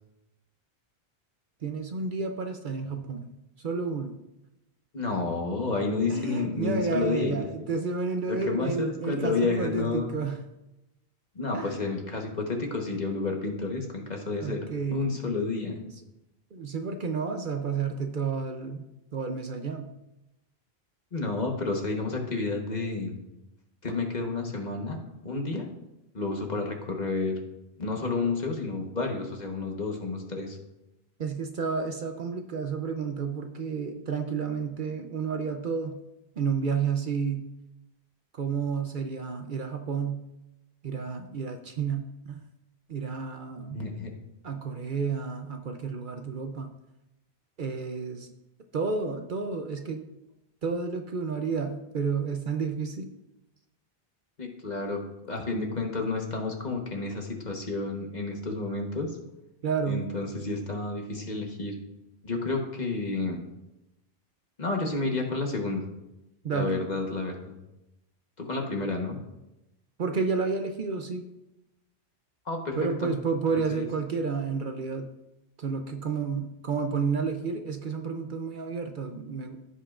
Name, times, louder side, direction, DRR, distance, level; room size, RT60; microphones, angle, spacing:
voice 1, 1.6-3.3 3.6-4.1 6.1-10.4 11.5-11.8 14.4-15.2 16.5-18.9 19.1-19.9 31.2-36.0 36.4-37.5 38.3-40.2 40.8-42.4 42.9-43.8 44.4-46.7 47.6-48.3 48.7-50.0 50.6-53.1 59.6-60.1 66.4-66.8 70.0-71.2 72.8-75.1 75.6-79.6, right 5 dB, 55° right, 5 dB, 0.8 m, -31 dB
voice 2, 4.9-7.7 8.3-10.1 11.3-15.8 21.1-23.1 23.8-25.0 25.2-25.7 26.1-27.4 27.8-30.6 43.6-44.1 54.4-59.2 59.8-61.7 62.2-63.4 64.6-65.8 66.5-67.6 68.4-69.2 72.4-73.1 73.8-73.9, left 3 dB, 45° left, 2 dB, 1.3 m, -30 dB
15.0 x 5.4 x 2.5 m, 0.93 s
omnidirectional pair, 1.1 m